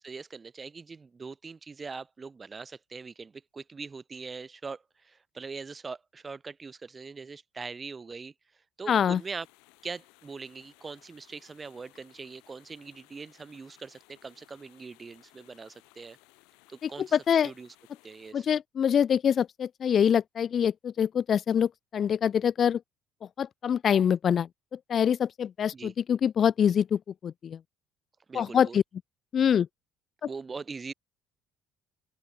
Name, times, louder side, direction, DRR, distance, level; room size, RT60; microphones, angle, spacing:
voice 1, 0.0-8.3 8.8-9.5 9.8-16.2 16.7-17.2 17.4-17.7 18.0-18.5 25.7-25.9 28.3-28.8 30.3-30.9, right 4 dB, 25° right, 2.1 m, -42 dB
voice 2, 8.9-9.2 16.8-17.5 18.3-22.8 23.4-27.6 28.3-28.8 29.3-29.7, left 8 dB, 45° left, 0.7 m, -25 dB
sound 1, 9.1-18.3, left 30 dB, 85° left, 7.8 m, -61 dB
open air
supercardioid pair, 100°, 0 cm